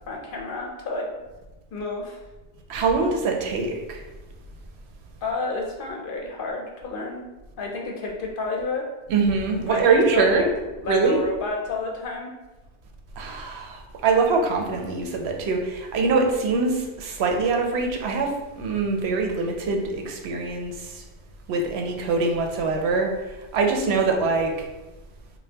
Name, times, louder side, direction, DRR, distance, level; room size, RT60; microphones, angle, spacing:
voice 1, 0.1-1.1 1.7-2.2 5.2-7.2 7.6-8.8 9.6-10.4 10.8-12.3, left 3 dB, 60° left, 0 dB, 0.7 m, -30 dB
voice 2, 2.7-4.0 9.1-10.5 10.9-11.2 13.2-21.0 21.5-24.7, right 4 dB, 75° right, 2 dB, 0.8 m, -23 dB
5.1 x 2.2 x 2.8 m, 1.1 s
omnidirectional pair, 1.1 m